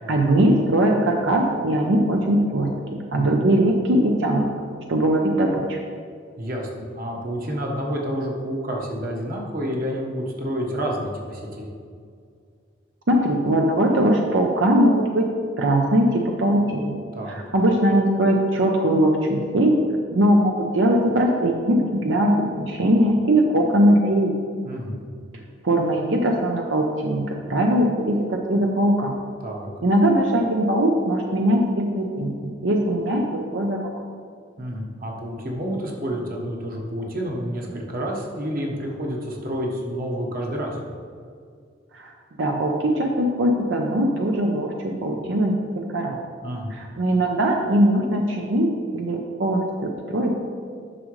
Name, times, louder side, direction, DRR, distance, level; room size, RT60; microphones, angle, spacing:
voice 1, 0.1-4.5 4.9-5.8 13.1-15.2 15.6-16.9 17.3-19.7 20.1-24.3 25.6-29.1 29.8-33.8 41.9-42.1 42.4-45.6 45.9-46.2 46.7-50.3, right 1 dB, 85° right, 1 dB, 0.7 m, -20 dB
voice 2, 6.4-11.7 17.1-17.4 24.6-25.0 29.4-29.7 34.6-40.8 46.4-46.7, equal, 50° right, -1 dB, 1.3 m, -29 dB
10.0 x 6.2 x 3.2 m, 2.2 s
head